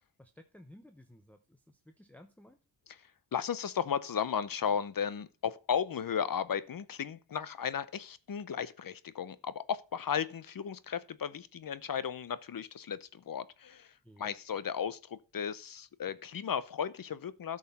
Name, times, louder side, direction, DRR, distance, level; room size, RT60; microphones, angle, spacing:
voice 1, 0.2-2.6 14.0-14.3, left 1 dB, 5° left, 0.8 m, -56 dB
voice 2, 2.9-17.6, left 7 dB, 50° left, 0.7 m, -35 dB
12.5 x 6.5 x 4.1 m
wide cardioid pair, 120°, 45 cm